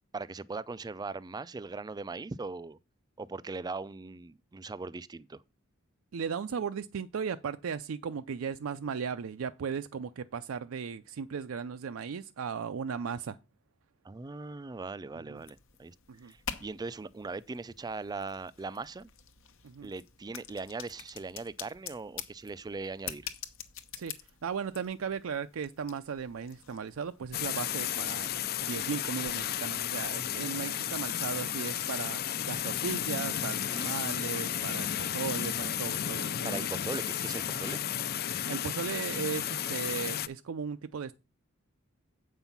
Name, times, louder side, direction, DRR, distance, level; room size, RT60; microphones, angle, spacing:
voice 1, 0.1-2.8 3.2-5.4 14.0-15.9 16.2-19.1 19.8-23.3 33.7-33.9 36.4-37.8, right 3 dB, 20° right, 0.3 m, -40 dB
voice 2, 6.1-13.4 15.2-15.4 16.1-16.3 19.6-19.9 24.0-24.1 24.4-28.3 28.6-36.7 37.7-37.8 38.5-41.2, right 6 dB, 80° right, 0.4 m, -36 dB
sound 1, 15.3-33.1, left 9 dB, 70° left, 1.0 m, -48 dB
sound 2, 27.3-40.3, left 10 dB, 50° left, 0.5 m, -33 dB
8.0 x 5.5 x 5.8 m
head